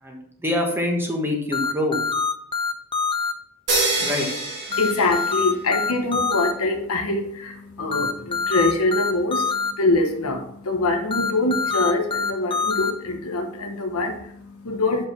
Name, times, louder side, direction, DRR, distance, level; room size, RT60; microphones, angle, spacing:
voice 1, 0.0-2.0 4.0-4.3, left 1 dB, 10° right, 1 dB, 1.3 m, -25 dB
sound 1, 1.5-3.3 4.7-6.5 7.9-9.7 11.1-12.9, left 5 dB, 25° left, 0.6 m, -24 dB
sound 2, 3.7-5.8, right 3 dB, 55° right, 2.0 m, -26 dB
voice 2, 4.7-15.1, left 2 dB, 75° left, 4 dB, 1.2 m, -24 dB
6.0 x 4.9 x 5.9 m, 0.72 s
head